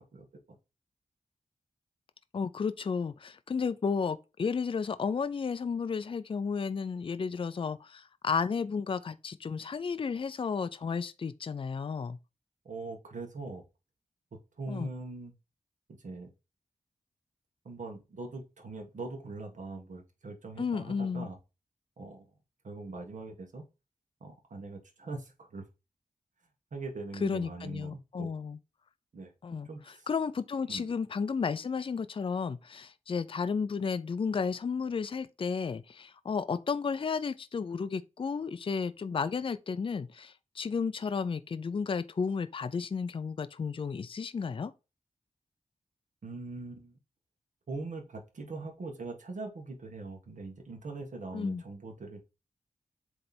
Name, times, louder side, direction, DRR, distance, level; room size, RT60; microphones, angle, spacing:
voice 1, 2.3-12.2 14.7-14.9 20.6-21.3 27.2-28.6 29.4-29.7 30.1-44.7 51.3-51.6, left 5 dB, 40° left, 0.5 m, -33 dB
voice 2, 12.7-13.6 14.6-15.3 16.0-16.3 17.7-21.4 22.0-22.3 22.6-23.6 24.2-25.7 26.7-28.3 29.1-29.3 29.7-30.1 30.7-30.9 46.2-47.0 47.7-52.2, right 3 dB, 70° right, 1.8 m, -42 dB
7.8 x 3.3 x 4.2 m
wide cardioid pair, 125°, 13 cm